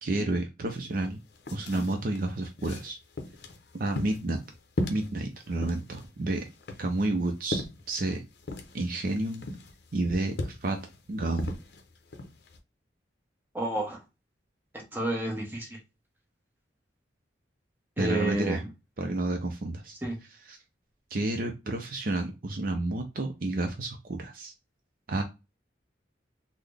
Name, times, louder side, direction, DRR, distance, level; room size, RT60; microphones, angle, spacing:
voice 1, 0.0-1.2 1.5-3.0 3.7-4.4 4.9-6.5 6.8-8.2 8.7-9.5 9.9-10.8 11.1-11.6 18.0-18.6 19.0-19.9 20.5-20.6 21.1-24.5 25.1-25.2, right 2 dB, 50° right, 4 dB, 0.5 m, -30 dB
sound 1, 0.7-0.8 1.1-12.6, left 1 dB, 60° left, 0.6 m, -38 dB
voice 2, 13.5-14.0 14.9-15.8 18.0-18.7 20.0-20.2, right 1 dB, 10° right, -1 dB, 0.9 m, -30 dB
3.8 x 2.1 x 3.3 m, 0.25 s
head